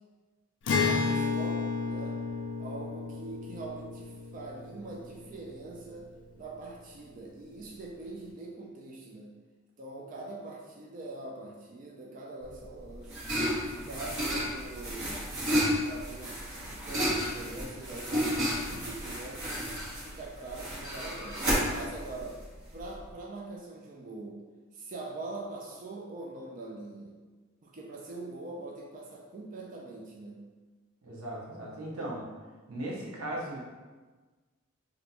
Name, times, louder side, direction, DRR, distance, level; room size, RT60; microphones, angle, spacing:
voice 1, 0.6-2.2 2.6-6.1 6.3-9.3 9.8-13.2 13.7-15.2 15.5-16.4 16.8-19.6 20.0-21.4 21.7-22.4 22.7-24.4 24.7-27.1 27.6-30.4, right 2 dB, 40° right, -2 dB, 0.4 m, -43 dB
Acoustic guitar, 0.7-6.1, left 4 dB, 60° left, 0.4 m, -32 dB
sound 1, 12.5-23.1, equal, 60° right, 1.1 m, -32 dB
voice 2, 31.0-32.2 32.7-33.6, right 1 dB, 90° right, -2 dB, 0.7 m, -37 dB
2.6 x 2.2 x 4.0 m, 1.3 s
head